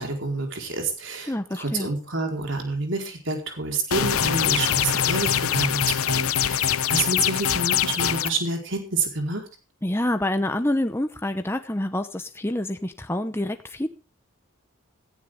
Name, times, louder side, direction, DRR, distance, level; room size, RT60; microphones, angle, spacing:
voice 1, 0.0-9.4, right 3 dB, 60° right, 3 dB, 4.6 m, -28 dB
voice 2, 1.3-1.9 9.8-13.9, left 1 dB, 10° left, 7 dB, 0.9 m, -27 dB
sound 1, 3.9-8.3, left 9 dB, 85° left, 0.8 m, -23 dB
17.0 x 14.5 x 3.7 m, 0.34 s
head